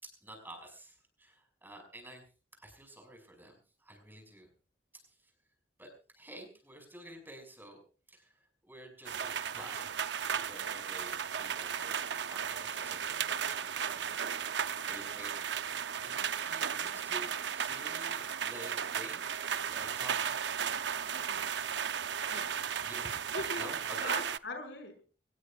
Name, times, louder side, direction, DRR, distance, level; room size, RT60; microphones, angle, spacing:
voice 1, 0.0-2.2 2.6-4.5 5.0-5.3 5.8-7.8 8.1-9.9 10.3-19.4 19.7-20.4 22.8-23.2 23.5-24.1, right 1 dB, 10° right, 3 dB, 5.7 m, -50 dB
sound 1, 9.0-24.4, right 8 dB, 85° right, 0.6 m, -35 dB
voice 2, 21.1-21.4 22.3-22.4 23.3-23.7 24.0-25.0, left 2 dB, 90° left, 5 dB, 5.5 m, -41 dB
24.5 x 19.0 x 2.4 m, 0.38 s
head